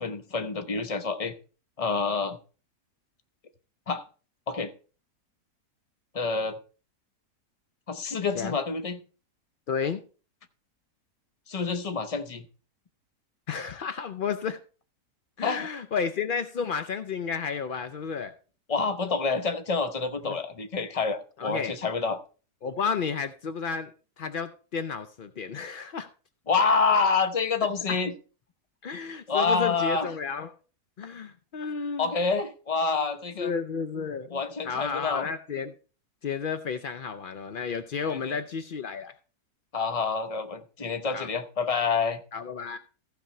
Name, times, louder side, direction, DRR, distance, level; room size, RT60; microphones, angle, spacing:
voice 1, 0.0-1.3 1.8-2.4 3.9-4.0 4.5-4.7 6.1-6.6 7.9-9.0 11.5-12.5 15.4-15.7 18.7-22.2 26.5-28.1 29.3-30.1 32.0-33.5 34.3-35.2 38.1-38.4 39.7-42.2, left 4 dB, 35° left, 9 dB, 0.6 m, -27 dB
voice 2, 9.7-10.0 13.5-14.6 15.4-18.3 20.2-20.4 21.4-21.7 22.6-23.9 24.2-26.1 27.9-28.0 28.8-30.5 31.0-32.1 33.4-35.7 36.2-39.1 41.1-41.3 42.3-42.8, left 6 dB, 80° left, 10 dB, 0.4 m, -32 dB
15.0 x 5.3 x 4.3 m, 0.37 s
omnidirectional pair, 1.7 m